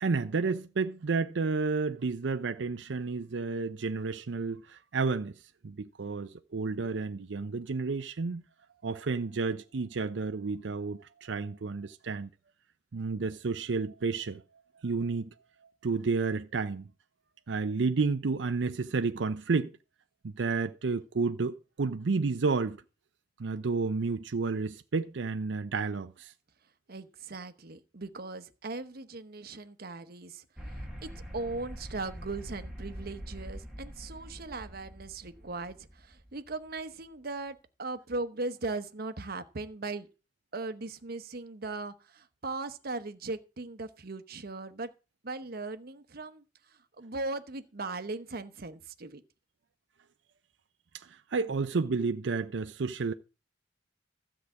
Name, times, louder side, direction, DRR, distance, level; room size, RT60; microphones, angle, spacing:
voice 1, 0.0-5.4 5.6-8.4 8.8-12.3 12.9-14.4 14.8-15.3 15.8-16.9 17.5-19.7 20.2-22.8 23.4-26.3 50.9-53.1, right 4 dB, 70° right, 0.6 m, -31 dB
voice 2, 26.9-30.4 31.0-40.1 40.5-44.9 45.2-46.4 47.0-49.2, right 3 dB, 55° right, 1.0 m, -38 dB
sound 1, 30.6-37.0, equal, 5° right, 1.7 m, -44 dB
13.0 x 4.9 x 8.2 m
head